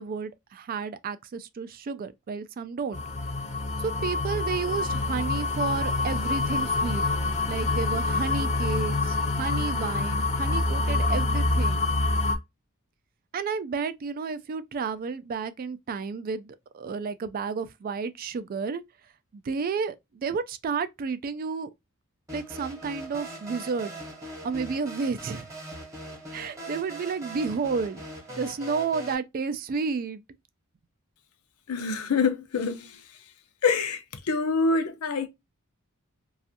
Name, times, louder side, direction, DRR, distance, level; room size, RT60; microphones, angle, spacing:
voice 1, 0.0-3.0 3.8-7.1 7.5-11.8 13.3-18.8 19.3-21.7 22.3-23.9 24.4-25.5 26.3-28.0 28.3-30.2, right 5 dB, 40° right, 0.3 m, -31 dB
sound 1, 2.9-12.4, left 3 dB, 30° left, 0.5 m, -26 dB
sound 2, 22.3-29.1, right 1 dB, 15° right, 0.9 m, -41 dB
voice 2, 31.7-32.9 33.6-35.3, left 4 dB, 85° left, 0.6 m, -26 dB
2.5 x 2.4 x 2.6 m
head